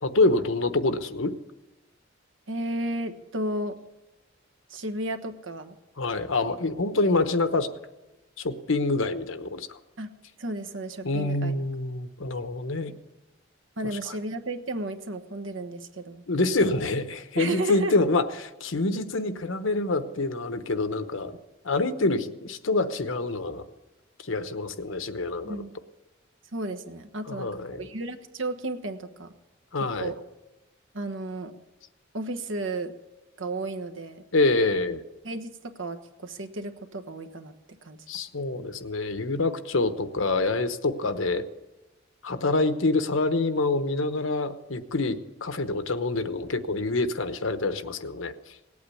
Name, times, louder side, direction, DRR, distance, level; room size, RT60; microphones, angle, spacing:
voice 1, 0.0-1.3 6.0-7.7 8.4-9.8 11.0-12.9 14.1-14.2 16.3-21.4 21.6-23.6 24.2-25.6 27.3-27.9 29.7-30.1 34.3-35.0 38.1-41.4 42.2-48.3, left 2 dB, 80° left, 10 dB, 1.0 m, -26 dB
voice 2, 2.5-3.8 4.7-5.7 10.0-10.1 10.4-11.5 12.9-13.0 13.8-16.2 17.4-18.0 25.4-25.7 26.5-29.3 29.8-30.2 30.9-31.5 32.1-32.9 33.4-34.2 35.2-37.5 37.8-38.0, right 2 dB, 75° right, 6 dB, 1.3 m, -33 dB
18.0 x 8.6 x 8.4 m, 1.0 s
head